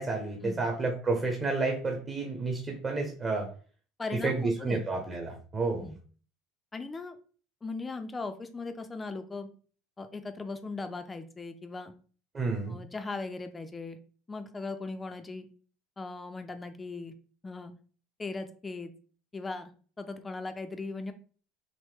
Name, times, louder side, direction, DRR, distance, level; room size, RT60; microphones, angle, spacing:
voice 1, 0.0-3.5 4.1-5.9 12.3-12.8, right 3 dB, 25° right, 1 dB, 0.8 m, -30 dB
voice 2, 4.0-5.1 5.8-6.0 6.7-7.2 7.6-9.5 10.0-11.9 12.7-14.0 14.3-15.5 16.0-17.1 17.4-17.7 18.2-18.9 19.3-19.7 20.0-21.1, left 3 dB, 15° left, 7 dB, 0.5 m, -38 dB
6.2 x 2.1 x 3.4 m, 0.42 s
cardioid pair, 155°, 0 cm